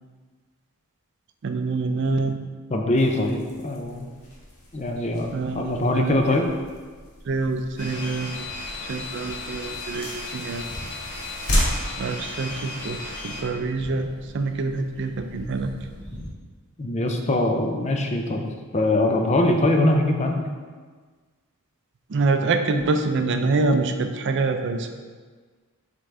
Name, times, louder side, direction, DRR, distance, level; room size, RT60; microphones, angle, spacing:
voice 1, 1.4-2.4 5.3-6.4 7.3-8.4 8.9-10.6 12.0-14.1 14.3-15.7 22.1-24.9, right 3 dB, 55° right, 6 dB, 0.4 m, -25 dB
voice 2, 2.7-4.1 4.7-6.5 16.8-18.5 18.7-20.4, left 1 dB, 30° left, 3 dB, 0.5 m, -22 dB
sound 1, 2.9-13.0, left 1 dB, 80° left, 1.4 m, -33 dB
sound 2, 7.8-13.4, left 2 dB, 55° left, 1.1 m, -35 dB
sound 3, 8.3-16.3, equal, 10° left, 1.5 m, -43 dB
7.6 x 3.7 x 3.3 m, 1.5 s
head